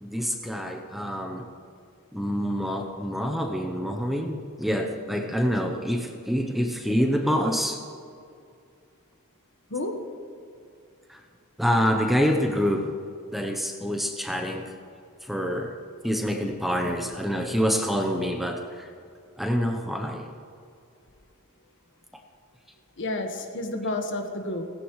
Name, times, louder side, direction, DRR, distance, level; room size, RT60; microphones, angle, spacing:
voice 1, 0.0-1.5 2.1-7.8 11.1-11.2 11.6-12.9 13.3-14.7 15.2-15.8 16.0-18.9 19.4-20.3, equal, ahead, 3 dB, 0.8 m, -26 dB
voice 2, 9.7-10.0 16.8-17.0 23.0-24.7, left 2 dB, 60° left, 4 dB, 1.5 m, -31 dB
17.0 x 15.5 x 3.2 m, 2.4 s
head